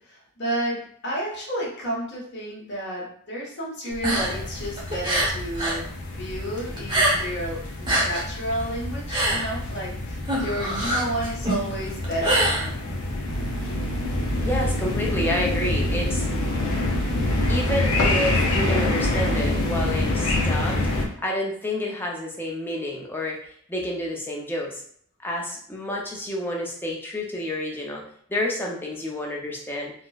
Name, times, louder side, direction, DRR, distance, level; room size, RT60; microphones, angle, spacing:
voice 1, 0.1-0.8 1.0-5.8 6.1-12.4, right 1 dB, 50° left, -5 dB, 1.2 m, -31 dB
sound 1, 3.9-5.8 6.1-7.5 7.7-13.2, right 1 dB, 20° right, 0.8 m, -25 dB
sound 2, 4.1-21.1, left 2 dB, 80° left, 0.6 m, -27 dB
sound 3, 13.3-20.0, right 2 dB, 55° right, 0.3 m, -32 dB
voice 2, 14.4-16.4 17.5-20.9 21.2-23.4 23.7-24.8 25.2-28.0 28.3-29.9, left 1 dB, 10° left, -2 dB, 0.5 m, -29 dB
4.2 x 2.1 x 2.3 m, 0.62 s
head